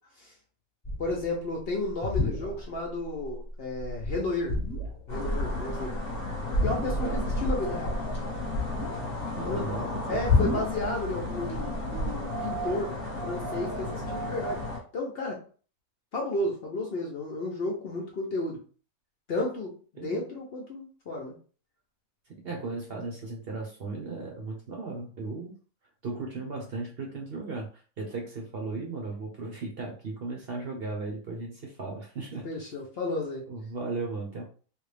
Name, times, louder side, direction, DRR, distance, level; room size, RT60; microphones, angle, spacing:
sound 1, 0.8-1.3 1.9-2.9 3.3-3.5 3.8-5.1 6.5-7.3 7.6-9.2 10.3-10.8, left 3 dB, 10° left, 1.2 m, -29 dB
voice 1, 1.0-4.6 5.1-5.9 6.6-8.0 9.4-9.7 10.1-12.9 13.2-14.6 14.9-15.4 16.1-18.6 19.3-21.3 32.4-33.4, left 2 dB, 55° left, 0 dB, 0.8 m, -32 dB
sound 2, 5.1-14.8, left 1 dB, 35° left, 1.1 m, -33 dB
voice 2, 9.4-10.2 20.0-20.3 22.3-25.6 26.0-32.5 33.5-34.4, right 3 dB, 50° right, 0 dB, 0.8 m, -36 dB
3.3 x 2.3 x 3.3 m, 0.40 s
omnidirectional pair, 1.5 m